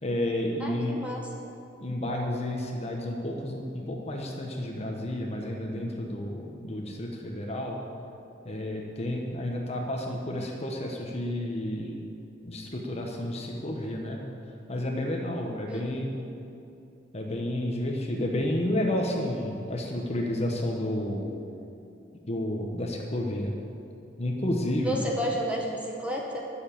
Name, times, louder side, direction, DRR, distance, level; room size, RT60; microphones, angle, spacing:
voice 1, 0.0-1.0 1.8-7.8 8.4-12.0 12.4-14.2 14.7-16.1 17.1-21.3 22.3-23.5 24.2-25.0, left 1 dB, 35° left, 0 dB, 1.1 m, -31 dB
voice 2, 0.6-1.2 15.7-15.8 24.8-26.5, equal, 5° right, -1 dB, 1.5 m, -31 dB
10.5 x 7.1 x 8.6 m, 2.7 s
head